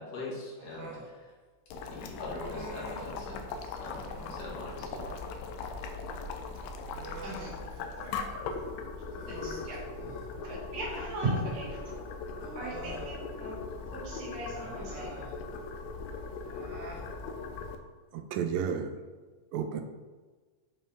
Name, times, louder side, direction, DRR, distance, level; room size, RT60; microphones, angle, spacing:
voice 1, 0.0-1.3 1.9-3.5 3.8-5.1, left 2 dB, 45° left, -4 dB, 1.3 m, -42 dB
Human voice, 0.6-1.1 2.3-3.2 3.9-4.5 6.4-8.2 8.5-8.6 9.1-10.4 11.6-11.7 12.3-13.1 14.5-15.4 16.4-17.1, right 2 dB, 70° right, 1.3 m, -46 dB
Boiling, 1.7-17.8, left 4 dB, 85° left, 1.6 m, -40 dB
voice 2, 7.2-7.6 7.9-8.0 8.6-8.7 9.3-9.8 10.5-11.8 12.5-13.5 13.9-15.1, right 2 dB, 50° right, -7 dB, 3.0 m, -37 dB
voice 3, 18.1-18.9 19.5-19.8, right 7 dB, 90° right, 6 dB, 2.3 m, -31 dB
7.0 x 4.4 x 3.5 m, 1.4 s
omnidirectional pair, 3.8 m